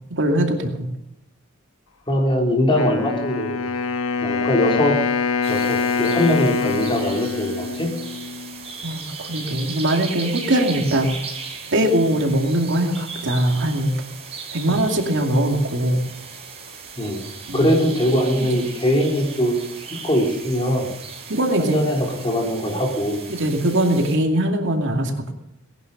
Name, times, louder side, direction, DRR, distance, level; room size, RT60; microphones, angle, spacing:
voice 1, 0.1-0.9 8.8-11.2 11.7-14.0 14.5-16.0 17.5-17.7 21.3-21.8 23.3-25.3, right 1 dB, 60° right, 3 dB, 2.5 m, -21 dB
voice 2, 2.1-3.7 4.2-5.0 5.5-7.9 14.7-14.8 17.0-17.2 17.5-19.6 20.0-20.9 21.6-23.2, equal, 25° left, 1 dB, 3.8 m, -21 dB
Wind instrument woodwind instrument, 2.7-8.7, left 5 dB, 75° left, 1.2 m, -25 dB
sound 1, 5.4-24.2, right 5 dB, 30° right, 4.1 m, -37 dB
19.0 x 11.0 x 6.6 m, 0.83 s
head